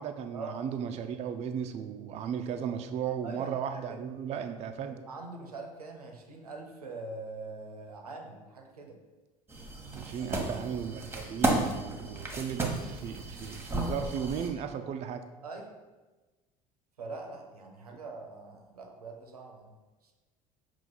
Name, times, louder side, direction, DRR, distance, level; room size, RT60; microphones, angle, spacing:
voice 1, 0.0-5.0 9.9-15.2 17.9-18.0, right 8 dB, 35° right, 7 dB, 0.4 m, -35 dB
voice 2, 3.2-4.0 4.3-4.4 5.1-9.0 10.2-10.3 15.4-15.7 17.0-19.8 20.0-20.1, right 3 dB, 85° right, 2 dB, 0.6 m, -43 dB
sound 1, 9.5-14.5, right 2 dB, 15° right, 1.0 m, -33 dB
5.6 x 2.4 x 3.8 m, 1.2 s
figure-of-eight pair, 65°, 19 cm